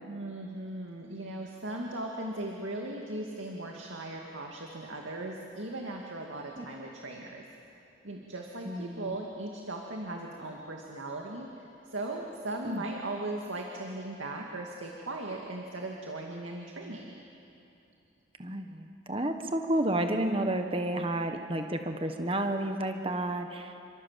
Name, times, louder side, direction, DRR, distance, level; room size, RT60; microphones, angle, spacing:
voice 1, 0.1-7.5 8.0-17.2, right 2 dB, 90° right, 0 dB, 2.3 m, -38 dB
voice 2, 8.6-9.1 12.6-12.8 18.4-23.8, right 1 dB, 30° right, 6 dB, 1.3 m, -31 dB
29.5 x 25.5 x 7.5 m, 2.7 s
head